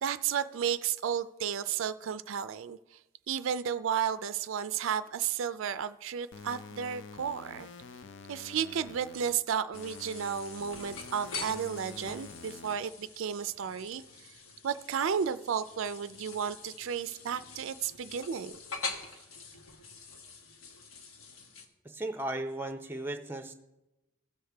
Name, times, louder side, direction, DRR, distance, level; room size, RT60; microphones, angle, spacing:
voice 1, 0.0-2.8 3.3-7.7 8.3-14.0 14.6-18.5, right 8 dB, 75° right, 13 dB, 0.4 m, -33 dB
sound 1, 6.3-9.3 9.7-12.7, left 4 dB, 60° left, 0.5 m, -48 dB
sound 2, 9.7-21.7, left 4 dB, 85° left, 1.2 m, -45 dB
voice 2, 21.8-23.5, right 1 dB, 10° right, 7 dB, 0.6 m, -36 dB
16.0 x 6.4 x 3.4 m, 0.94 s
head